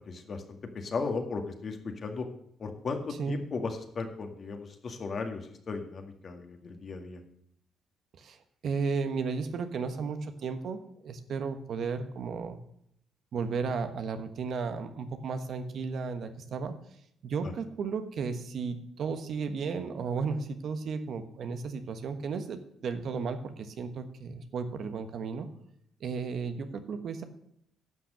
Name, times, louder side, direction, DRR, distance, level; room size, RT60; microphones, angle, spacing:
voice 1, 0.1-2.3 2.6-7.2, left 4 dB, 45° left, 5 dB, 1.9 m, -36 dB
voice 2, 8.2-12.6 13.3-16.8 17.2-25.5 26.0-27.2, right 5 dB, 65° right, 8 dB, 1.2 m, -34 dB
11.0 x 6.2 x 7.5 m, 0.72 s
cardioid pair, 90°, 0 cm